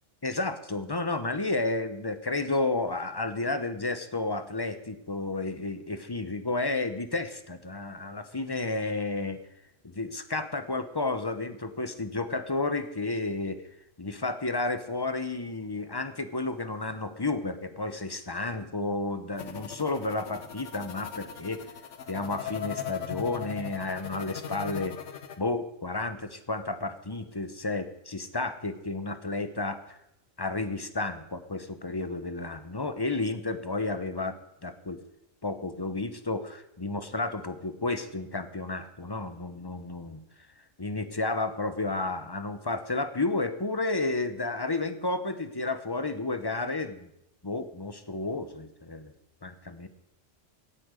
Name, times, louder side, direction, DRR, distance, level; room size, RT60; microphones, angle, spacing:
voice 1, 0.2-9.4 9.9-13.6 14.0-21.6 22.1-25.0 25.4-30.0 30.4-35.0 35.4-40.2 40.8-47.0 47.4-49.1 49.4-49.9, left 2 dB, 20° left, 10 dB, 0.9 m, -32 dB
sound 1, 19.4-25.4, left 9 dB, 70° left, 1.4 m, -38 dB
16.5 x 8.7 x 6.5 m, 0.81 s
omnidirectional pair, 1.3 m